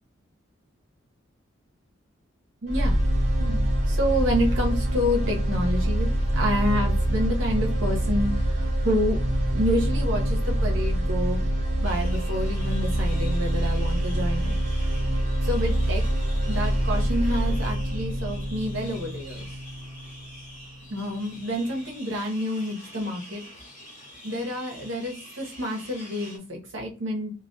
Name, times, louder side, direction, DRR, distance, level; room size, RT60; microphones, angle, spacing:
voice 1, 2.6-3.0 3.4-6.1 6.3-8.6 8.8-9.2 9.5-11.4 11.8-14.6 15.4-16.0 16.4-19.5 20.9-23.4 24.2-27.3, equal, 75° right, 0 dB, 0.8 m, -28 dB
sound 1, 2.7-20.7, right 1 dB, 35° right, 0.6 m, -25 dB
sound 2, 11.8-26.4, equal, 40° left, 0.8 m, -46 dB
2.2 x 2.2 x 2.6 m, 0.33 s
head